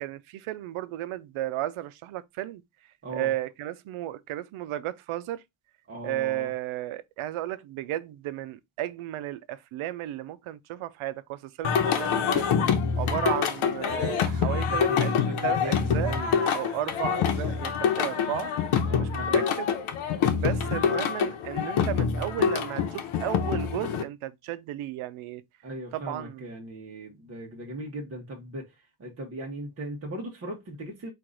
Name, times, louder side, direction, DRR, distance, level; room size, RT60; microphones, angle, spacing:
voice 1, 0.0-2.6 3.1-5.4 6.0-12.4 13.0-15.2 15.4-16.2 16.5-18.5 19.0-19.8 20.4-25.4 25.9-26.5, right 14 dB, 85° right, 0.6 m, -34 dB
voice 2, 5.9-6.5 14.4-16.4 18.9-19.4 25.6-31.1, right 1 dB, 30° right, 1.0 m, -38 dB
Singing, 11.6-24.0, left 7 dB, 85° left, 1.0 m, -26 dB
4.6 x 2.5 x 3.8 m
cardioid pair, 155°, 49 cm